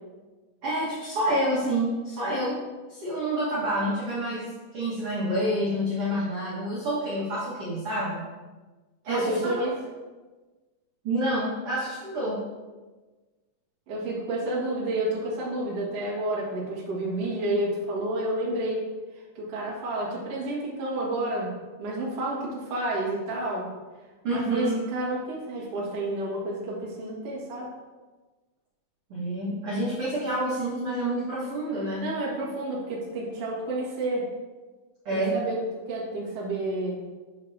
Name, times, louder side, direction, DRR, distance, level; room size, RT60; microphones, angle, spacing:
voice 1, 0.6-2.6 2.9-8.2 9.0-9.5 11.0-12.4 24.2-24.7 29.1-32.1 35.0-35.4, right 1 dB, 85° right, -8 dB, 1.2 m, -28 dB
voice 2, 9.0-9.7 13.9-18.9 19.1-23.7 24.3-27.7 32.0-34.3 35.1-37.0, right 1 dB, 55° right, -5 dB, 1.7 m, -30 dB
8.1 x 6.4 x 2.7 m, 1.3 s
omnidirectional pair, 5.2 m